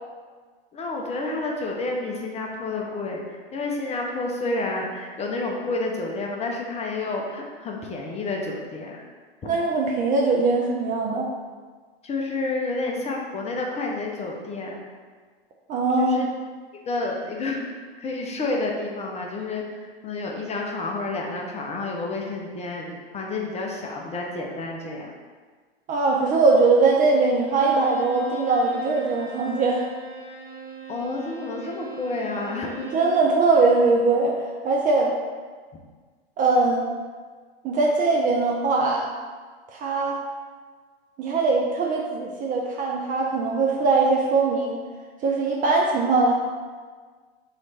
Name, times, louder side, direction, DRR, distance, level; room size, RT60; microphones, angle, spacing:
voice 1, 0.7-9.0 12.0-14.8 16.0-16.3 16.9-17.7 18.0-19.6 20.0-25.1 30.9-32.9, left 2 dB, 20° left, 0 dB, 0.6 m, -30 dB
voice 2, 9.4-11.3 15.7-16.2 25.9-29.8 32.9-35.1 36.4-36.8 37.6-39.1 39.7-40.2 41.2-44.8 45.2-46.3, right 3 dB, 25° right, -1 dB, 0.4 m, -21 dB
Bowed string instrument, 27.4-33.3, right 6 dB, 40° right, 1.2 m, -38 dB
3.2 x 3.1 x 4.1 m, 1.5 s
hypercardioid pair, 95°, 31 cm